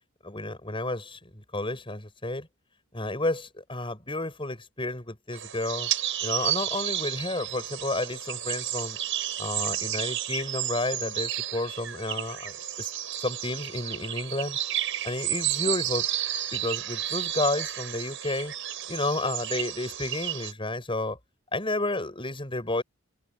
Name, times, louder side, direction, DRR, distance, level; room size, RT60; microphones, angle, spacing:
voice 1, 0.2-2.5 2.9-5.9 6.2-9.0 9.4-12.9 13.2-14.6 15.0-16.1 16.5-18.5 18.9-21.2 21.5-22.8, left 2 dB, 25° left, 6.9 m, -31 dB
sound 1, 5.3-20.5, right 12 dB, 60° right, 7.8 m, -32 dB
head